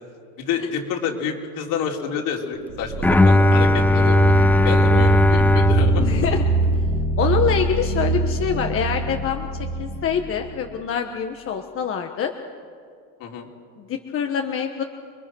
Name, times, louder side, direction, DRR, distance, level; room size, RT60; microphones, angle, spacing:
voice 1, 0.4-4.3 4.6-6.0 13.2-13.5, left 7 dB, 60° left, 1 dB, 3.7 m, -28 dB
sound 1, 2.7-10.5, right 2 dB, 70° right, 2.8 m, -24 dB
Bowed string instrument, 3.0-7.2, left 1 dB, 5° left, 0.5 m, -18 dB
voice 2, 4.9-5.2 6.0-6.4 7.2-9.5 9.8-12.3 13.8-14.8, left 7 dB, 35° left, 4 dB, 1.3 m, -25 dB
28.5 x 22.0 x 6.3 m, 2.3 s
cardioid pair, 135°, 36 cm